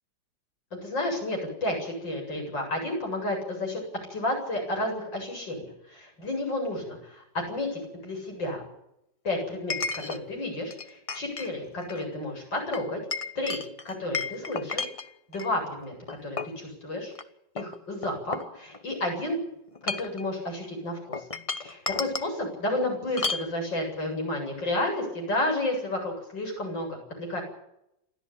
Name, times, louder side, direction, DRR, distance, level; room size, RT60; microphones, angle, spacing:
voice 1, 0.7-3.8 4.1-8.6 9.2-9.8 10.1-13.0 13.4-13.6 13.9-14.9 15.3-17.1 17.6-19.4 19.8-21.2 21.6-27.4, left 1 dB, 75° left, 1 dB, 8.7 m, -31 dB
Chink clink, 6.2-6.3 9.7-10.2 10.7-11.5 11.8-12.1 12.7-15.5 16.1-16.6 17.1-17.2 17.6-19.0 19.7-20.2 21.1-22.3 23.2-23.5, left 4 dB, 25° left, 0.8 m, -33 dB
28.5 x 13.5 x 8.8 m, 0.82 s
omnidirectional pair, 2.0 m